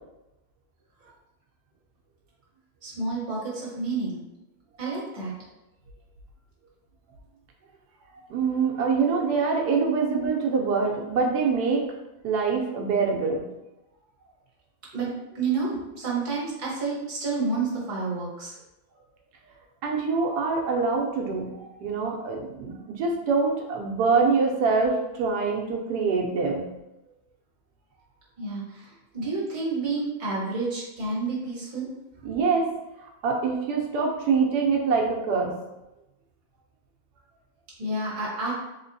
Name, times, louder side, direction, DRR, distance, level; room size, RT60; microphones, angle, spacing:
voice 1, 2.8-4.2 4.8-5.3 8.4-8.6 9.1-9.4 14.9-18.5 28.4-31.9 37.8-38.5, right 3 dB, 35° right, -5 dB, 1.1 m, -30 dB
voice 2, 8.3-11.8 12.2-13.4 19.8-21.5 21.8-26.6 32.2-32.7 33.2-35.5, right 4 dB, 85° right, 0 dB, 1.2 m, -24 dB
3.7 x 2.8 x 2.6 m, 0.94 s
omnidirectional pair, 1.7 m